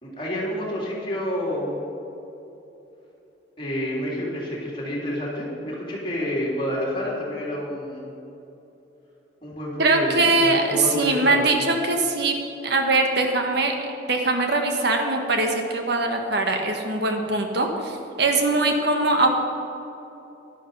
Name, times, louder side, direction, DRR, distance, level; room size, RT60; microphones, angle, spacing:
voice 1, 0.0-1.8 3.6-8.1 9.4-11.6, left 1 dB, 25° left, -4 dB, 3.4 m, -29 dB
voice 2, 9.8-12.4 12.6-13.7 14.1-19.3, right 2 dB, 60° right, 3 dB, 1.5 m, -22 dB
11.5 x 11.0 x 5.5 m, 3.0 s
head